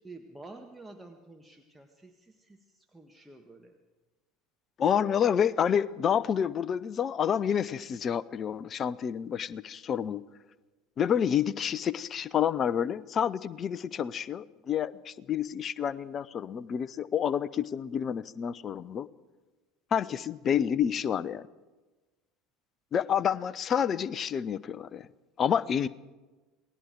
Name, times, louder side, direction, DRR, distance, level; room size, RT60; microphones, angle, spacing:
voice 1, 0.0-3.7, right 2 dB, 5° right, 4 dB, 1.7 m, -50 dB
voice 2, 4.8-10.2 11.0-19.1 19.9-21.5 22.9-25.1 25.4-25.9, left 8 dB, 35° left, 19 dB, 0.8 m, -29 dB
28.5 x 19.5 x 4.7 m, 1.2 s
figure-of-eight pair, 65°, 0 cm